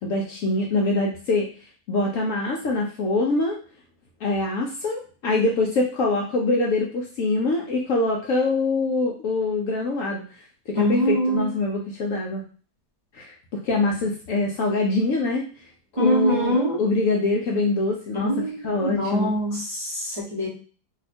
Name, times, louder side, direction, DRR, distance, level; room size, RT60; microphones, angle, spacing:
voice 1, 0.0-1.5 1.9-3.6 4.2-10.2 10.7-12.4 13.1-15.4 16.0-18.3 18.6-19.3, left 2 dB, 70° left, -1 dB, 0.8 m, -24 dB
voice 2, 10.7-11.4 16.0-16.8 18.1-20.5, equal, 30° right, -7 dB, 0.6 m, -24 dB
2.7 x 2.2 x 4.1 m, 0.41 s
omnidirectional pair, 1.8 m